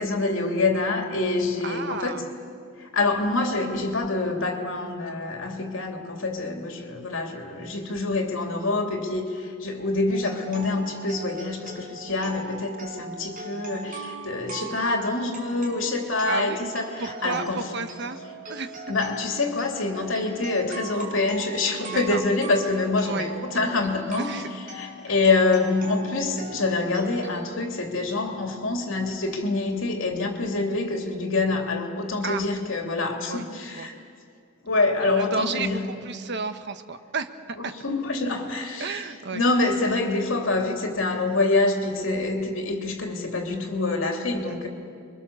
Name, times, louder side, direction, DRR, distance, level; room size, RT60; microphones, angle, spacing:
voice 1, 0.0-2.2 2.8-17.7 18.9-24.4 24.7-33.9 34.6-35.9 37.6-39.0 39.3-44.7, left 3 dB, 70° left, 3 dB, 3.0 m, -26 dB
voice 2, 1.6-2.3 16.2-16.7 17.0-18.2 18.5-18.8 20.0-20.1 21.8-22.2 23.0-23.3 24.2-24.5 32.2-32.4 33.2-33.9 35.0-37.7 38.8-39.4 44.4-44.5, right 4 dB, 60° right, 9 dB, 1.2 m, -32 dB
sound 1, 10.1-27.4, right 3 dB, 40° right, 5.1 m, -40 dB
29.5 x 23.5 x 7.1 m, 2.3 s
head